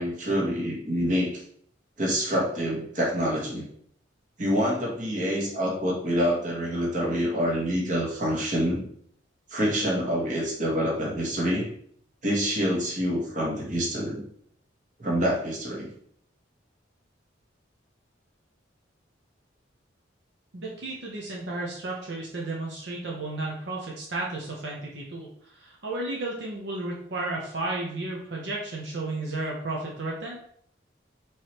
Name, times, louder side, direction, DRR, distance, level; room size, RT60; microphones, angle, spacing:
voice 1, 0.0-1.4 2.0-3.7 4.4-8.8 9.5-11.7 12.2-14.2 15.0-15.9, equal, 40° right, -2 dB, 1.3 m, -26 dB
voice 2, 20.5-30.4, right 2 dB, 70° right, -3 dB, 0.8 m, -33 dB
4.7 x 3.2 x 2.9 m, 0.64 s
head